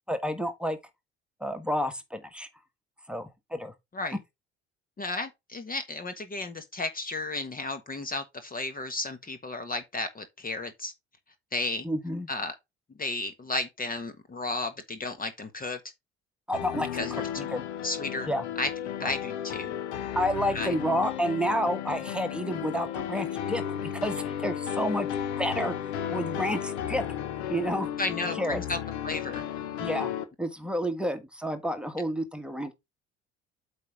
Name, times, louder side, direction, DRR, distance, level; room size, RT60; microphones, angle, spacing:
voice 1, 0.1-0.8 1.4-2.5 3.1-3.7 11.8-12.3 16.5-17.6 18.3-18.4 19.0-19.1 20.1-25.1 25.4-27.1 27.5-27.9 28.4-28.6 29.8-30.1 30.4-32.7, equal, 5° right, 1.4 m, -30 dB
voice 2, 5.0-10.9 11.5-11.9 12.3-12.5 13.0-15.8 16.9-17.4 17.8-18.3 18.6-18.7 19.0-19.7 20.5-20.7 28.0-28.8 29.0-29.4, left 2 dB, 25° left, 1.2 m, -33 dB
sound 1, 16.5-30.2, left 9 dB, 75° left, 0.9 m, -34 dB
8.2 x 3.5 x 4.9 m
hypercardioid pair, 55°, 33 cm